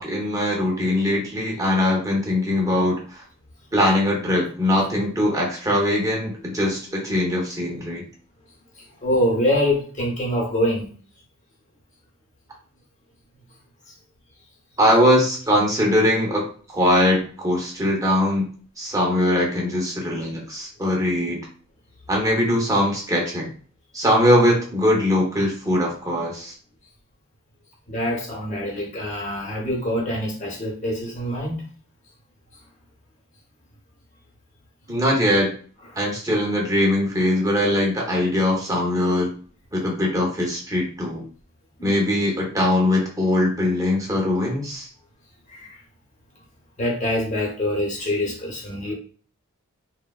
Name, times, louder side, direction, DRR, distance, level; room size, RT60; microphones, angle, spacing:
voice 1, 0.0-3.0 3.7-8.0 14.8-16.4 16.7-18.5 18.8-21.4 22.1-23.5 23.9-26.5 34.9-35.5 36.0-39.3 39.7-41.2 41.8-44.9, left 1 dB, 15° right, -2 dB, 0.7 m, -21 dB
voice 2, 8.8-10.9 27.9-31.6 35.9-36.0 41.8-42.0 45.5-45.8 46.8-48.9, left 1 dB, 35° left, -2 dB, 0.9 m, -25 dB
3.2 x 2.1 x 2.3 m, 0.43 s
head